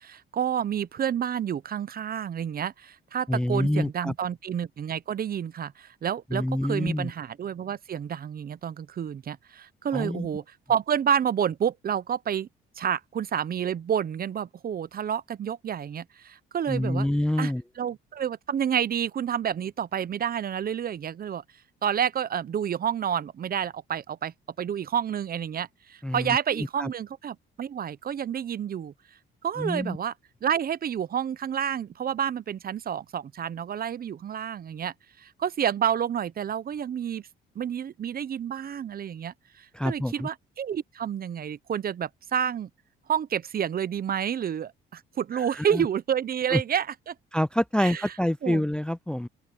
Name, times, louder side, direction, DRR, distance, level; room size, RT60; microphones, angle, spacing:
voice 1, 0.0-12.5 12.8-17.1 17.4-21.4 21.8-28.9 29.4-30.1 30.4-37.3 37.5-42.7 43.1-47.1 47.8-48.1 48.4-48.6, right 8 dB, 45° right, 0.8 m, -29 dB
voice 2, 3.3-4.1 6.3-7.1 9.9-10.3 16.7-17.6 26.0-26.9 29.6-30.0 39.7-40.3 45.6-45.9 46.5-46.6 47.3-49.3, left 1 dB, 5° left, 0.4 m, -27 dB
open air
cardioid pair, 85°, 21 cm